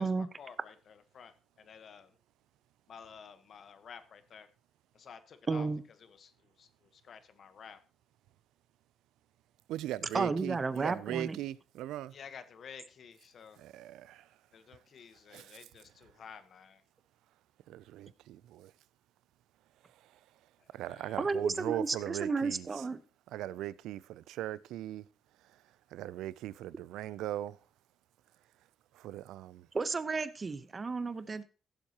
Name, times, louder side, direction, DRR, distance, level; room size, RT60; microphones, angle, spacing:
voice 1, 0.0-2.1 2.9-4.5 4.9-5.7 6.0-7.8 12.1-13.6 14.5-16.8 20.8-21.3, left 7 dB, 55° left, 1.2 m, -52 dB
voice 2, 5.5-5.8 10.1-11.4 21.2-23.0 29.7-31.4, right 4 dB, 30° right, 0.9 m, -32 dB
voice 3, 9.7-12.2 13.6-14.8 15.3-15.7 16.0-16.2 17.7-18.7 19.8-22.9 23.3-27.7 28.6-28.7 28.9-29.7, right 13 dB, 90° right, 0.4 m, -40 dB
16.0 x 7.3 x 2.9 m
cardioid pair, 90°, 0 cm